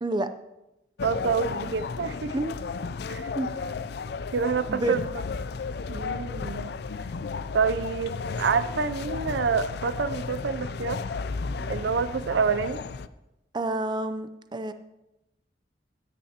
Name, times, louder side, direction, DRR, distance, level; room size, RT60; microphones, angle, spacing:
sound 1, 1.0-13.1, left 4 dB, 65° left, 0.4 m, -33 dB
voice 1, 1.0-2.4 3.1-3.3 4.3-5.0 5.9-6.7 7.5-11.2 11.7-12.8, right 5 dB, 75° right, 14 dB, 0.5 m, -27 dB
voice 2, 4.7-5.1 13.5-14.7, right 2 dB, 25° right, 10 dB, 0.5 m, -28 dB
15.5 x 10.5 x 2.9 m, 0.93 s
head